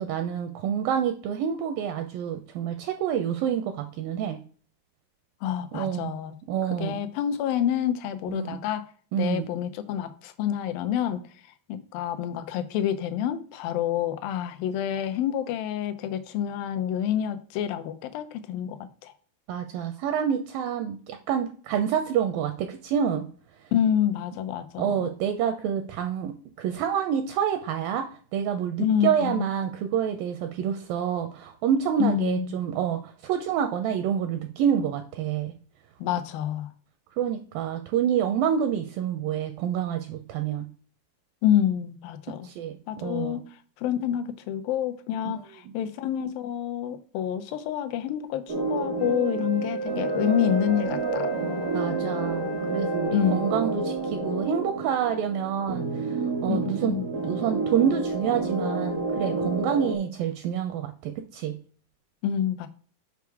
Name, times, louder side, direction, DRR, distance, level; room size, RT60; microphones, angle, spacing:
voice 1, 0.0-4.4 5.7-6.1 6.5-7.0 8.3-8.6 9.1-9.5 19.5-23.2 24.8-28.1 28.3-35.5 37.2-40.7 42.4-43.4 45.2-45.3 51.7-56.9 57.2-61.5, right 8 dB, 85° right, 2.0 m, -28 dB
voice 2, 5.4-6.3 6.8-8.9 9.2-11.2 11.7-19.1 23.7-25.1 28.8-29.5 32.0-32.5 36.0-36.7 41.4-42.5 42.9-43.4 43.8-51.3 53.1-53.7 56.5-57.1 62.2-62.7, left 10 dB, 80° left, 2.1 m, -28 dB
sound 1, 48.5-59.9, right 3 dB, 65° right, 0.9 m, -30 dB
Wind instrument woodwind instrument, 48.9-53.7, right 3 dB, 55° left, 1.2 m, -34 dB
7.1 x 4.7 x 4.7 m
omnidirectional pair, 4.6 m